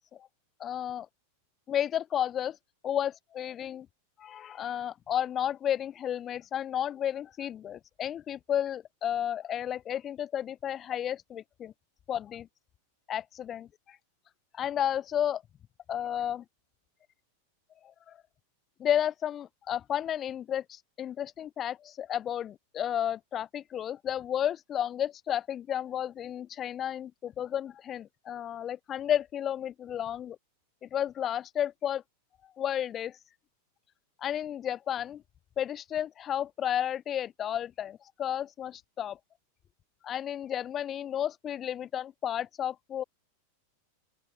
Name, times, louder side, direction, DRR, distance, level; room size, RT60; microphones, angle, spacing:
voice 1, 0.6-1.1 1.7-2.6 2.8-3.9 4.2-11.7 12.1-12.5 13.1-13.7 14.5-15.4 15.9-16.4 17.8-18.2 18.8-30.4 30.8-32.0 32.6-33.1 34.2-35.2 35.6-39.2 40.0-43.0, left 10 dB, 25° left, 1.0 m, -32 dB
open air
figure-of-eight pair, 90°, 0 cm